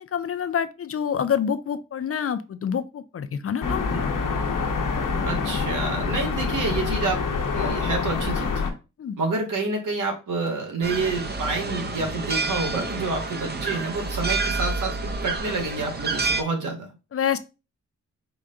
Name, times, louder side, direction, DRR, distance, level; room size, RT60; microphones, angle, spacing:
voice 1, 0.1-3.8 9.0-9.2 17.1-17.4, left 8 dB, 45° left, 12 dB, 0.4 m, -27 dB
sound 1, 3.6-8.7, left 4 dB, 80° left, 1.0 m, -26 dB
voice 2, 5.2-7.2 7.5-8.6 9.2-16.9, right 3 dB, 75° right, 2 dB, 1.5 m, -28 dB
sound 2, 10.8-16.4, right 3 dB, 30° right, 0.8 m, -28 dB
4.8 x 2.2 x 3.7 m, 0.29 s
cardioid pair, 80°, 31 cm